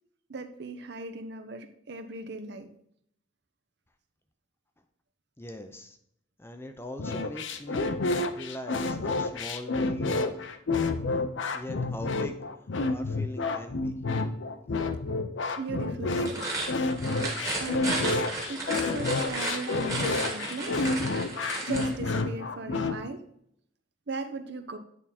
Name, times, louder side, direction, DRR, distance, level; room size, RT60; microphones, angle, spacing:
voice 1, 0.3-2.7 15.6-16.4 17.6-20.8 21.6-23.2 24.1-24.8, right 3 dB, 55° right, 8 dB, 0.7 m, -37 dB
voice 2, 5.4-6.0 6.4-8.0 8.3-10.4 11.5-12.4 12.9-14.0, left 1 dB, 10° left, 6 dB, 0.5 m, -41 dB
sound 1, 7.0-23.0, left 3 dB, 65° left, 0.6 m, -29 dB
sound 2, 16.2-22.0, right 2 dB, 15° right, 1.4 m, -34 dB
9.0 x 3.6 x 4.2 m, 0.70 s
head